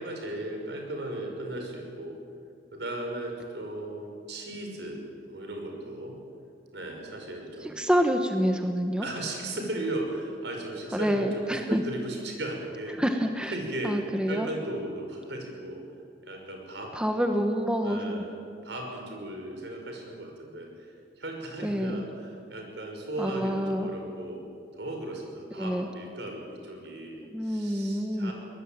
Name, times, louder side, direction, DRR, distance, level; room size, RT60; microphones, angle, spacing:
voice 1, 0.0-2.1 2.7-5.0 5.3-6.2 6.7-7.8 9.0-13.0 13.5-14.0 14.3-15.8 16.2-17.0 17.8-18.4 18.6-20.9 21.2-24.4 24.7-28.3, right 1 dB, 80° right, 2 dB, 5.7 m, -36 dB
voice 2, 7.6-9.1 10.9-11.8 13.0-13.5 13.8-14.5 16.9-18.2 21.6-22.0 23.2-23.9 25.6-25.9 27.3-28.3, equal, 5° right, 4 dB, 1.3 m, -27 dB
23.0 x 19.0 x 8.9 m, 2.4 s
head